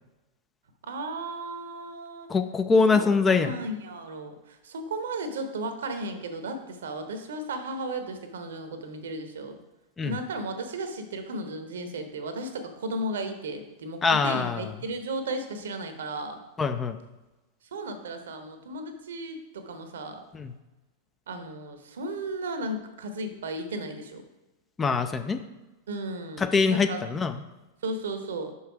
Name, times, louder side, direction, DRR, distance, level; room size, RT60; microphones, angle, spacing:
voice 1, 0.8-2.3 2.9-9.6 10.0-16.4 17.7-20.2 21.3-24.2 25.9-27.0 27.8-28.5, right 2 dB, 65° right, 7 dB, 0.8 m, -35 dB
voice 2, 2.3-3.5 10.0-10.2 14.0-14.7 16.6-17.0 20.3-20.5 24.8-25.4 26.4-27.4, left 4 dB, 20° left, 9 dB, 0.4 m, -23 dB
5.6 x 5.4 x 4.8 m, 1.1 s
figure-of-eight pair, 90°, 0 cm